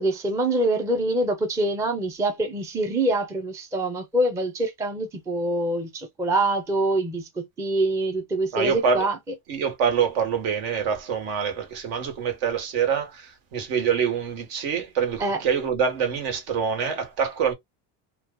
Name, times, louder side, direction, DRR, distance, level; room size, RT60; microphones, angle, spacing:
voice 1, 0.0-9.2 15.2-15.4, right 2 dB, 5° right, 0.4 m, -25 dB
voice 2, 8.5-9.0 9.5-17.5, right 7 dB, 70° right, 1.4 m, -25 dB
2.7 x 2.3 x 3.7 m
cardioid pair, 155°, 43 cm